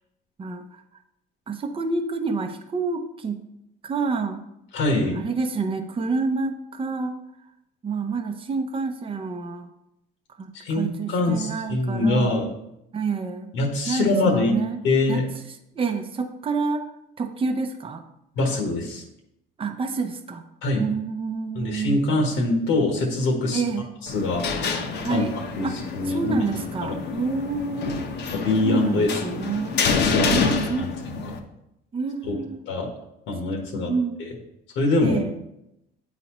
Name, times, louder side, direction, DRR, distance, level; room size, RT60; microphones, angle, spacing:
voice 1, 0.4-0.8 1.5-3.4 3.8-4.4 5.1-7.2 7.8-9.7 10.4-12.5 12.9-13.5 13.9-14.8 15.1-15.2 15.5-16.9 17.2-18.0 19.6-20.4 20.8-22.0 23.5-23.9 25.0-25.8 26.1-28.1 28.6-29.8 30.2-30.9 31.9-32.6 33.8-34.3 35.0-35.4, right 4 dB, 30° right, 5 dB, 0.6 m, -28 dB
voice 2, 4.7-5.2 10.5-12.5 13.5-14.6 14.8-15.2 18.4-19.0 20.6-20.8 21.5-23.6 24.0-24.4 25.1-25.2 25.6-25.7 25.9-26.4 26.8-26.9 28.3-29.4 29.9-30.4 30.8-30.9 32.7-32.9 33.3-33.9 34.7-35.2, left 2 dB, 85° left, 1 dB, 1.2 m, -23 dB
sound 1, 24.1-31.4, left 5 dB, 60° left, 0.8 m, -28 dB
9.0 x 4.1 x 3.0 m, 0.84 s
cardioid pair, 105°, 19 cm